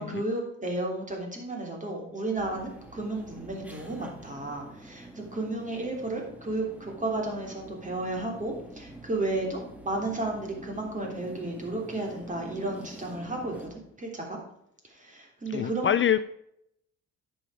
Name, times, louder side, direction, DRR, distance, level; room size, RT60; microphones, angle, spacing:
voice 1, 0.0-9.6 9.8-14.4 14.8-16.0, right 2 dB, 25° right, 0 dB, 3.3 m, -33 dB
sound 1, 2.4-13.7, right 1 dB, 5° right, 1.6 m, -46 dB
voice 2, 15.5-16.2, left 10 dB, 40° left, 14 dB, 0.4 m, -25 dB
10.0 x 7.0 x 4.9 m, 0.75 s
cardioid pair, 90°, 30 cm